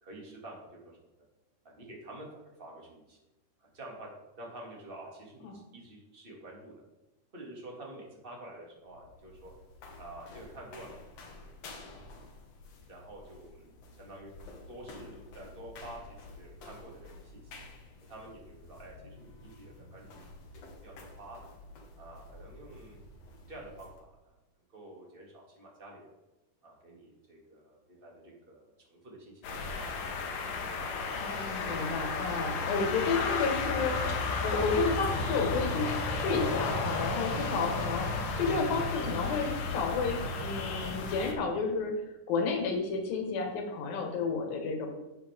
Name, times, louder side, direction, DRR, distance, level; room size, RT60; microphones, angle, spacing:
voice 1, 0.0-1.0 1.6-3.2 3.6-4.1 4.4-6.8 7.3-9.5 10.0-11.3 11.8-12.1 12.9-14.3 14.7-17.7 18.1-21.4 22.0-23.0 23.5-24.4 24.7-26.1 26.6-30.1, right 1 dB, 20° right, -2 dB, 1.9 m, -49 dB
sound 1, 8.7-24.0, left 2 dB, 55° left, 2.4 m, -51 dB
sound 2, 29.4-41.3, left 3 dB, 75° left, 2.7 m, -33 dB
voice 2, 31.1-41.9 42.3-44.9, left 4 dB, 90° left, 2 dB, 3.3 m, -31 dB
11.5 x 8.1 x 3.6 m, 0.98 s
omnidirectional pair, 4.0 m